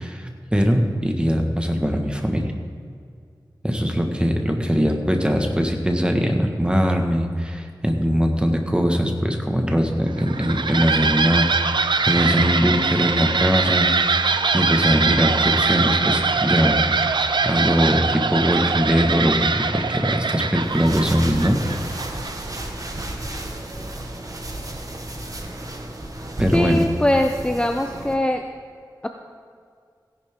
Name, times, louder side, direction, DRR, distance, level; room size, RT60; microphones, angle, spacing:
voice 1, 0.0-2.5 3.6-14.2 14.5-16.8 17.4-21.6 26.4-26.8, equal, 10° right, 3 dB, 1.6 m, -21 dB
sound 1, 10.1-22.6, right 4 dB, 75° right, 0.6 m, -22 dB
sound 2, 20.6-28.1, right 1 dB, 45° right, 1.5 m, -33 dB
voice 2, 26.5-28.4, left 1 dB, 15° left, 4 dB, 0.7 m, -21 dB
17.0 x 10.5 x 3.7 m, 2.2 s
wide cardioid pair, 65°, 8 cm